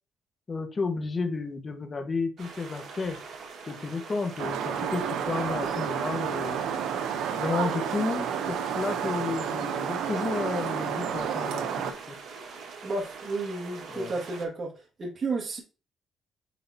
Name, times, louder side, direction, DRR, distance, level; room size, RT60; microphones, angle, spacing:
voice 1, 0.5-3.2 3.7-6.6 7.4-12.2 13.9-14.1, left 4 dB, 35° left, 5 dB, 1.3 m, -32 dB
sound 1, 2.4-14.5, right 4 dB, 70° right, 1.7 m, -44 dB
sound 2, 4.4-11.9, right 8 dB, 85° right, 0.8 m, -30 dB
voice 2, 12.8-14.7 15.0-15.6, right 3 dB, 40° right, -1 dB, 1.9 m, -32 dB
9.2 x 3.9 x 2.8 m, 0.34 s
cardioid pair, 90°, 0 cm